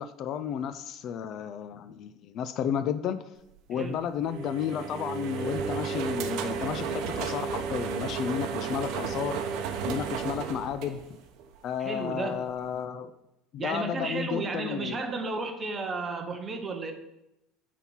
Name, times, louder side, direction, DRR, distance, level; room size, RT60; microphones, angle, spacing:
voice 1, 0.0-3.2 3.7-9.4 9.8-11.0 11.6-13.1 13.5-15.0, left 8 dB, 45° left, 12 dB, 0.3 m, -32 dB
sound 1, 4.2-11.5, right 6 dB, 65° right, 0.7 m, -33 dB
voice 2, 11.8-12.4 13.6-16.9, right 3 dB, 20° right, 6 dB, 0.7 m, -33 dB
5.6 x 4.1 x 6.1 m, 0.88 s
cardioid pair, 155°, 0 cm